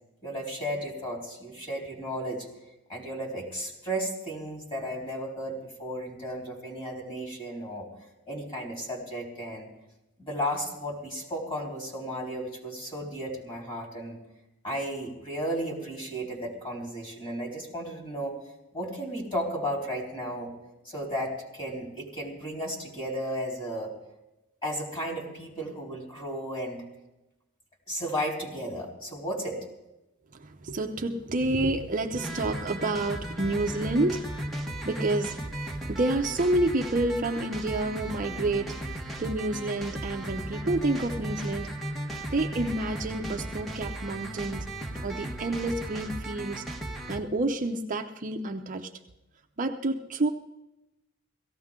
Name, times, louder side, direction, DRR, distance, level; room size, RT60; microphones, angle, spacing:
voice 1, 0.2-2.5 2.9-7.9 8.3-9.7 10.2-14.2 14.6-18.4 18.7-20.5 20.8-23.9 24.6-26.8 27.9-29.6, equal, 25° left, -1 dB, 3.8 m, -34 dB
voice 2, 30.3-35.5 35.9-41.7 42.3-44.7 45.0-46.6 47.1-48.9 49.6-50.3, right 2 dB, 40° right, 4 dB, 0.7 m, -29 dB
sound 1, 32.2-47.2, right 1 dB, ahead, 1.3 m, -36 dB
17.5 x 15.5 x 3.7 m, 0.96 s
head